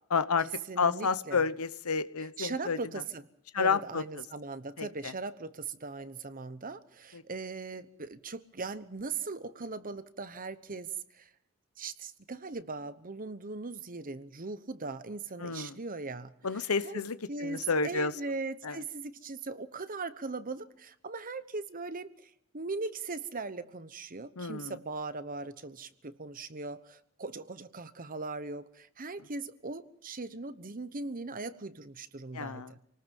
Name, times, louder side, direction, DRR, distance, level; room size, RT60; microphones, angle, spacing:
voice 1, 0.1-0.5 0.8-2.8 3.5-4.0 4.8-5.1 7.1-7.2 15.4-15.7 16.4-18.1 18.6-18.8 24.4-24.8 32.3-32.7, left 5 dB, 85° left, 13 dB, 1.0 m, -30 dB
voice 2, 0.7-1.4 2.4-3.2 3.6-11.3 11.8-16.3 16.8-17.0 17.3-32.8, right 3 dB, 40° right, 12 dB, 1.0 m, -39 dB
28.5 x 19.5 x 5.4 m, 0.71 s
head